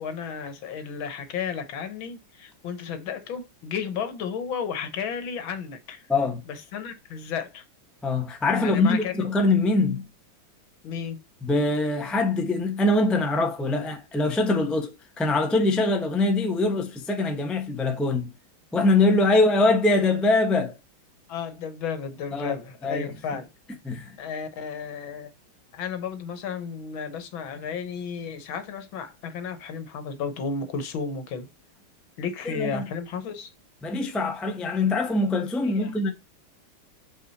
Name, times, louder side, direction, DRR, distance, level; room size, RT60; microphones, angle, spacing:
voice 1, 0.0-6.0 6.5-7.6 8.6-9.2 10.8-11.2 21.3-23.5 24.2-25.3 25.7-31.5 32.2-33.5 35.6-36.1, left 6 dB, 75° left, 1.9 m, -33 dB
voice 2, 6.1-6.4 8.0-10.0 11.4-18.3 18.7-20.7 22.3-22.6 22.8-23.1 23.8-24.1 32.4-32.9 33.8-36.1, left 2 dB, ahead, 0.6 m, -23 dB
5.5 x 4.9 x 4.1 m
omnidirectional pair, 2.2 m